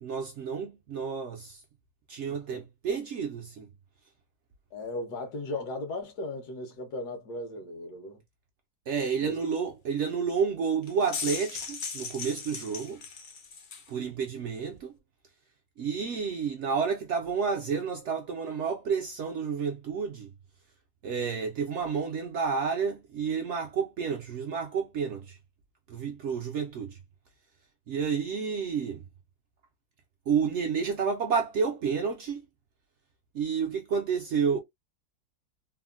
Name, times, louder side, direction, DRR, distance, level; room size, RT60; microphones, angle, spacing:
voice 1, 0.0-1.6 2.1-3.7 8.9-13.0 13.9-14.9 15.8-20.3 21.0-25.4 25.9-27.0 27.9-29.0 30.3-32.4 33.3-34.6, right 6 dB, 70° right, 0.7 m, -30 dB
voice 2, 2.3-2.6 4.7-8.2 9.2-9.4, left 2 dB, 85° left, 1.5 m, -37 dB
sound 1, 10.8-13.9, left 5 dB, 65° left, 0.5 m, -37 dB
3.4 x 2.1 x 2.3 m
omnidirectional pair, 1.6 m